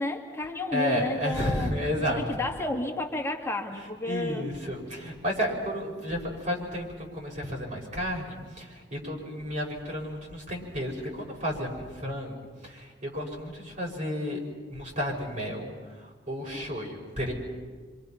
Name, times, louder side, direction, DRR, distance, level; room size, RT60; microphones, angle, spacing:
voice 1, 0.0-1.7 2.2-4.5, left 2 dB, 15° left, 1 dB, 2.0 m, -31 dB
voice 2, 0.7-2.2 4.1-14.4 14.7-17.3, equal, 45° right, -2 dB, 5.8 m, -32 dB
28.0 x 25.5 x 5.8 m, 1.5 s
head